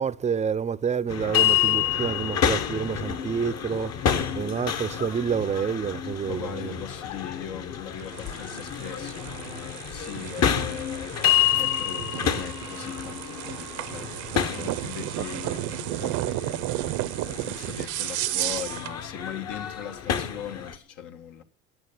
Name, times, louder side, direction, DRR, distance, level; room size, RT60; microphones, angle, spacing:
voice 1, 0.0-3.9 4.3-6.8 14.3-14.8, right 7 dB, 20° right, 0.6 m, -28 dB
sound 1, 1.1-20.8, left 9 dB, 50° left, 1.6 m, -29 dB
voice 2, 6.3-11.2 11.6-16.6 17.2-21.4, left 9 dB, 65° left, 1.5 m, -40 dB
sound 2, 8.0-19.0, right 16 dB, 60° right, 0.8 m, -33 dB
9.6 x 8.8 x 6.6 m
supercardioid pair, 90°, 34 cm